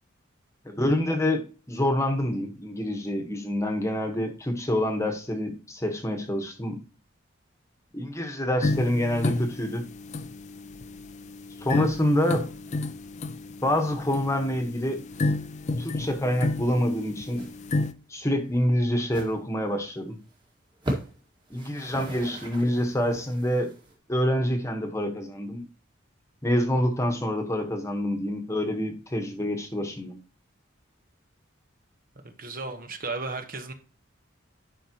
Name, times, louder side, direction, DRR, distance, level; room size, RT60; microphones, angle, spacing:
voice 1, 0.6-1.4 1.7-6.8 7.9-9.8 11.6-12.5 13.6-15.0 15.8-17.4 18.1-20.2 21.5-23.7 24.1-25.6 26.4-30.2, left 1 dB, 15° left, 1.2 m, -26 dB
sound 1, 8.6-17.9, left 2 dB, 35° left, 0.5 m, -31 dB
sound 2, 16.7-17.0 17.3-17.6 17.8-18.0 18.5-18.6 19.0-19.4 19.8-19.9 20.2-20.3 20.7-21.2 21.5-23.9, equal, 20° right, 1.9 m, -37 dB
voice 2, 32.2-33.7, right 3 dB, 45° right, 1.1 m, -34 dB
11.0 x 5.6 x 3.0 m
head